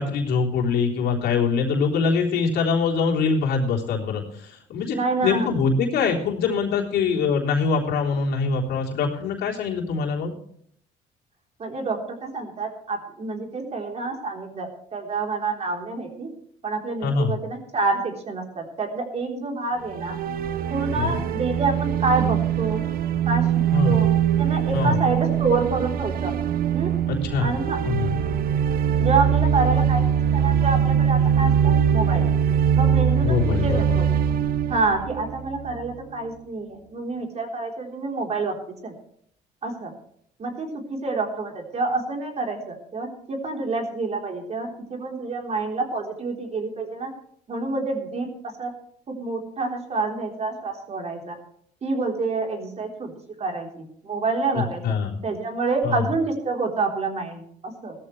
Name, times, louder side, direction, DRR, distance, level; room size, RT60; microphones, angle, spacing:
voice 1, 0.0-10.3 17.0-17.4 20.9-21.2 23.7-24.0 24.7-25.0 27.1-27.5 27.8-28.2 33.2-34.0 54.5-55.2 55.8-56.0, left 5 dB, 75° left, -1 dB, 3.6 m, -23 dB
voice 2, 4.9-5.5 11.6-16.3 16.6-20.2 20.7-22.8 23.3-23.5 23.8-24.1 24.4-26.4 26.7-26.9 27.4-27.8 29.0-32.3 32.7-34.1 34.7-38.5 38.8-38.9 39.6-39.9 40.4-47.1 47.5-48.7 49.1-51.4 51.8-53.1 53.4-55.0 55.2-57.9, right 3 dB, 40° right, 2 dB, 3.7 m, -27 dB
sound 1, 19.8-35.9, right 8 dB, 60° right, 1.0 m, -22 dB
17.0 x 13.5 x 3.3 m, 0.66 s
cardioid pair, 110°, 17 cm